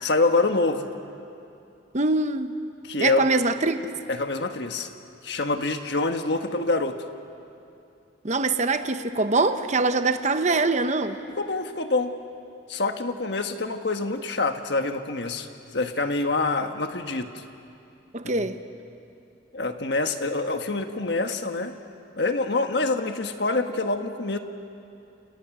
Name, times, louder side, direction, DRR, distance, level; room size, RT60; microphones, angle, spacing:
voice 1, 0.0-0.9 2.8-3.3 4.1-4.9 5.2-6.9 11.4-12.1 12.7-17.4 18.4-18.5 19.5-21.7 22.1-24.4, left 3 dB, 65° left, 1.5 m, -26 dB
voice 2, 1.9-2.6 3.0-3.9 8.2-11.2 18.1-18.6, right 3 dB, 40° right, 1.0 m, -23 dB
29.5 x 28.5 x 6.2 m
head